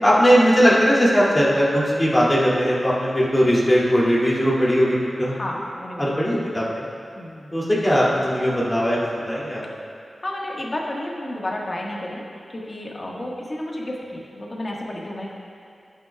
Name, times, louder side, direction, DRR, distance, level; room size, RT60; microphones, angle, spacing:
voice 1, 0.0-5.3 6.0-6.8 7.5-9.7, equal, 20° left, -7 dB, 2.6 m, -19 dB
voice 2, 5.3-6.1 7.1-7.6 10.2-12.3 12.5-15.3, left 1 dB, 35° left, -3 dB, 1.6 m, -31 dB
18.0 x 8.1 x 2.4 m, 2.4 s
wide cardioid pair, 110°, 0 cm